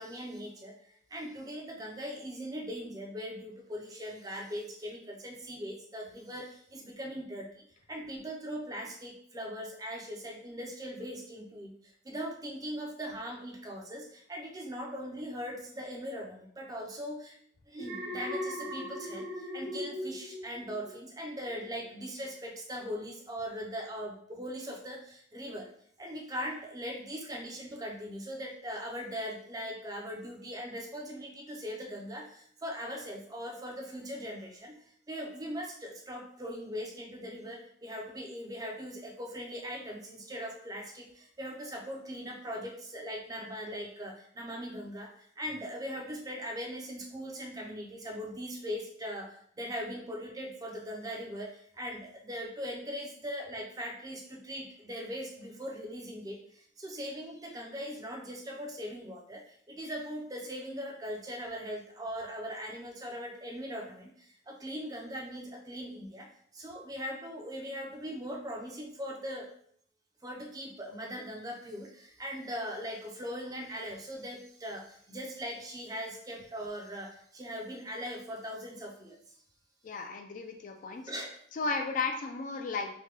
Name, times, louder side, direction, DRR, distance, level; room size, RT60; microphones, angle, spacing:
voice 1, 0.0-17.4 17.7-25.7 26.0-69.5 70.2-79.2 81.1-81.4, equal, 20° right, 0 dB, 0.4 m, -40 dB
Alarm, 17.8-21.1 21.5-21.8, left 1 dB, 60° right, 1.0 m, -38 dB
voice 2, 79.8-81.0 81.5-83.0, left 4 dB, 45° left, 4 dB, 0.3 m, -34 dB
2.9 x 2.1 x 3.2 m, 0.63 s
head